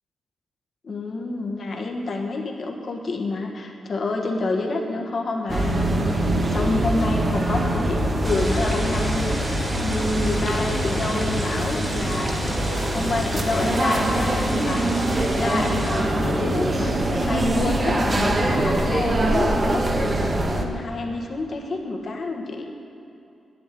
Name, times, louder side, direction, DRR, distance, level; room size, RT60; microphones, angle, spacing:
voice 1, 0.8-6.2 6.5-19.8 20.3-22.7, left 2 dB, 50° left, 1 dB, 1.4 m, -28 dB
sound 1, 5.5-20.7, right 1 dB, 30° right, 1.2 m, -23 dB
sound 2, 8.2-16.0, right 1 dB, 15° right, 2.1 m, -34 dB
10.5 x 8.0 x 9.1 m, 2.7 s
cardioid pair, 110°, 0 cm